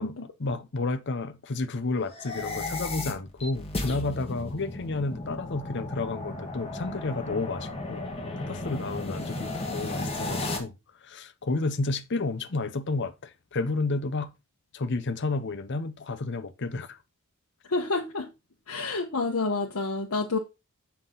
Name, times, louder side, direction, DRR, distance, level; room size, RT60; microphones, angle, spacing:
voice 1, 0.4-8.0 8.4-10.7 11.0-14.3 14.7-17.0, left 3 dB, 55° left, 0.8 m, -31 dB
sound 1, 2.1-10.6, left 2 dB, 25° left, 1.8 m, -34 dB
voice 2, 17.7-18.3 18.7-20.4, left 3 dB, 80° left, 1.1 m, -28 dB
7.6 x 5.8 x 3.9 m
head